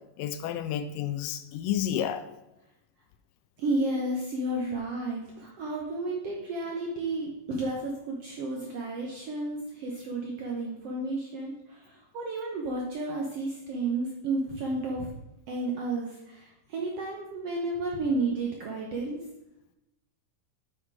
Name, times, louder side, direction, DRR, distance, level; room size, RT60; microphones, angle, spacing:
voice 1, 0.2-2.2, left 10 dB, 80° left, 10 dB, 2.2 m, -30 dB
voice 2, 3.6-15.1 15.5-19.2, right 2 dB, 70° right, -1 dB, 1.5 m, -32 dB
7.9 x 6.2 x 4.8 m, 0.89 s
omnidirectional pair, 3.9 m